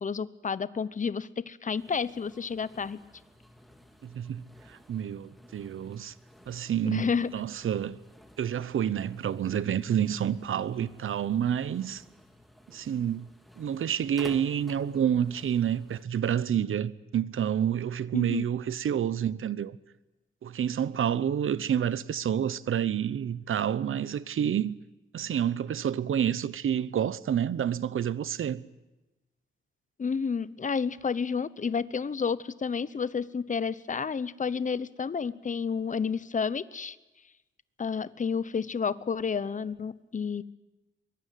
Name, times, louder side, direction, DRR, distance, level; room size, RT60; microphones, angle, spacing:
voice 1, 0.0-3.0 6.8-7.3 18.1-18.4 30.0-37.0 37.8-40.4, left 6 dB, 40° left, 0.9 m, -30 dB
sound 1, 1.7-16.0, equal, ahead, 2.8 m, -54 dB
voice 2, 4.0-6.1 6.5-8.0 8.4-12.0 12.7-13.3 13.6-19.8 20.4-24.7 25.1-28.6, right 9 dB, 85° right, 1.0 m, -29 dB
24.0 x 22.0 x 9.3 m
wide cardioid pair, 130°, 21 cm